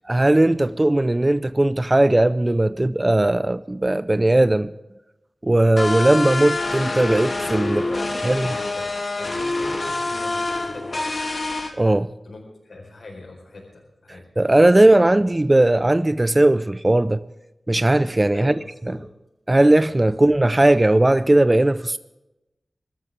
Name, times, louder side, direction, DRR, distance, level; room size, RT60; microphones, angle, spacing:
voice 1, 0.1-4.7 5.4-7.8 8.2-8.5 11.8-12.1 14.4-17.2 17.7-18.5 19.5-22.0, right 1 dB, 25° right, 0.5 m, -18 dB
sound 1, 5.8-11.7, left 2 dB, 50° left, 2.9 m, -26 dB
voice 2, 7.6-8.9 9.2-11.0 12.2-14.3 14.7-14.8 18.3-19.1 20.1-20.2, left 2 dB, 80° left, 4.7 m, -40 dB
23.5 x 13.5 x 3.7 m
wide cardioid pair, 75°, 0 cm